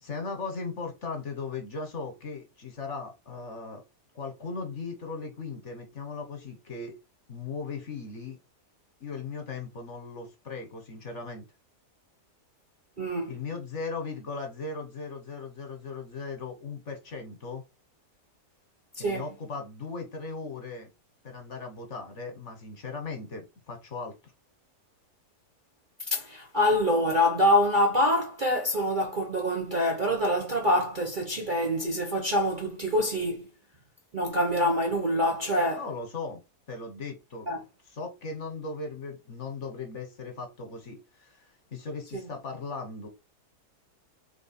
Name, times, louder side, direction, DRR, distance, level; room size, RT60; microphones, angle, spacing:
voice 1, 0.0-3.8 4.1-7.0 7.3-8.4 9.0-11.5 13.3-17.6 19.0-20.9 21.2-24.2 35.7-36.4 36.7-37.5 37.9-43.1, left 4 dB, 50° left, 1.2 m, -38 dB
voice 2, 13.0-13.3 19.0-19.2 26.1-33.5 34.1-35.8 37.5-37.6 42.1-42.2, left 1 dB, 40° right, 0.7 m, -25 dB
3.4 x 3.2 x 4.2 m
omnidirectional pair, 1.8 m